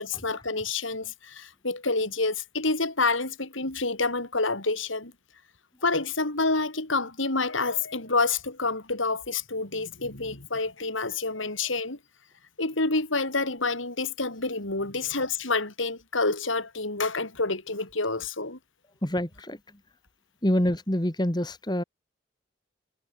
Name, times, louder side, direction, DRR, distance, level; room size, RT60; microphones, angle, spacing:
voice 1, 0.0-5.1 5.8-12.0 12.6-18.6, left 3 dB, 90° left, 5.0 m, -28 dB
voice 2, 19.0-19.6 20.4-21.8, equal, 20° left, 1.8 m, -26 dB
head